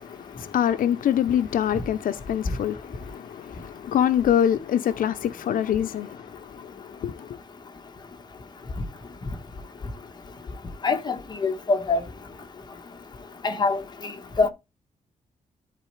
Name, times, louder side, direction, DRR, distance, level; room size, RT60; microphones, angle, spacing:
voice 1, 0.0-6.6 7.0-7.3, left 10 dB, 85° left, 0.7 m, -25 dB
voice 2, 10.8-11.2 11.4-12.0 13.4-13.8 14.4-14.5, left 3 dB, 30° left, 1.3 m, -23 dB
12.5 x 4.2 x 3.2 m
wide cardioid pair, 165°, 14 cm